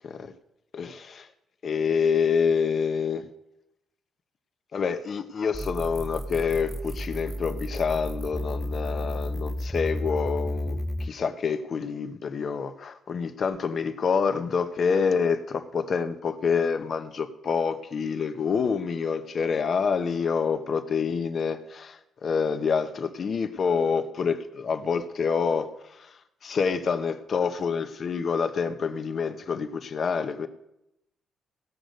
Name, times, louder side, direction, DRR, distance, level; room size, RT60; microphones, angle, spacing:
voice 1, 0.7-1.3 1.6-3.3 4.7-26.1 26.4-30.5, left 6 dB, 50° left, 9 dB, 0.9 m, -27 dB
sound 1, 5.5-11.1, equal, ahead, 0.4 m, -32 dB
16.5 x 6.4 x 5.2 m, 0.85 s
cardioid pair, 90°, 0 cm